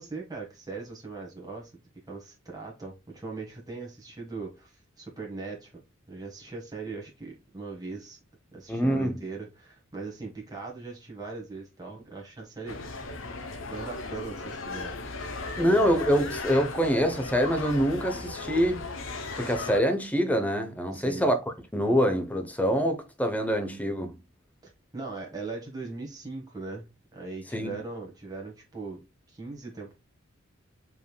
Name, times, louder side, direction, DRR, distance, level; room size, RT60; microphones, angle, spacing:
voice 1, 0.0-1.7 2.1-5.7 6.1-8.2 8.5-13.1 13.7-14.9 15.5-15.8 20.9-21.3 24.6-29.0 29.3-29.9, right 3 dB, 20° right, 1.5 m, -40 dB
voice 2, 8.7-9.2 15.6-18.8 19.4-21.4 21.7-24.2 27.5-27.8, equal, 10° left, 0.8 m, -25 dB
sound 1, 12.7-19.8, left 3 dB, 70° left, 0.8 m, -37 dB
5.3 x 3.5 x 2.2 m
head